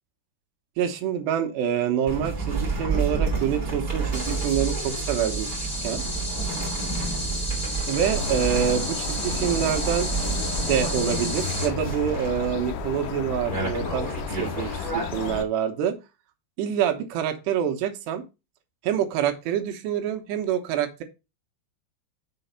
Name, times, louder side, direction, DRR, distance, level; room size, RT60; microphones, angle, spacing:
voice 1, 0.8-5.5 5.8-6.0 7.9-10.1 10.6-14.1 14.4-16.0 16.6-18.2 18.8-21.0, right 9 dB, 80° right, 3.0 m, -26 dB
sound 1, 2.1-15.4, right 4 dB, 15° right, 2.4 m, -30 dB
sound 2, 4.1-11.7, left 1 dB, 20° left, 0.5 m, -33 dB
sound 3, 8.0-15.4, left 6 dB, 80° left, 2.7 m, -34 dB
6.9 x 4.0 x 5.5 m
omnidirectional pair, 5.0 m